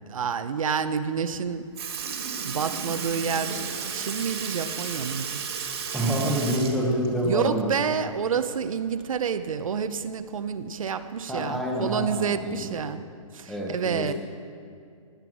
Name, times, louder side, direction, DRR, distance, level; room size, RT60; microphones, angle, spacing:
voice 1, 0.1-1.6 2.4-3.6 3.9-5.4 7.2-13.0 13.3-14.1, right 6 dB, 75° right, 11 dB, 0.8 m, -28 dB
Sink (filling or washing) / Liquid, 1.3-1.4 1.8-7.9 8.2-8.3 9.9-10.0 10.9-11.0 11.8-12.0 12.8-12.9, right 6 dB, 50° right, 1.8 m, -34 dB
voice 2, 5.9-7.7 11.3-12.7 13.5-14.1, right 1 dB, ahead, -2 dB, 0.9 m, -27 dB
18.5 x 9.1 x 6.2 m, 2.3 s
hypercardioid pair, 175°, 17 cm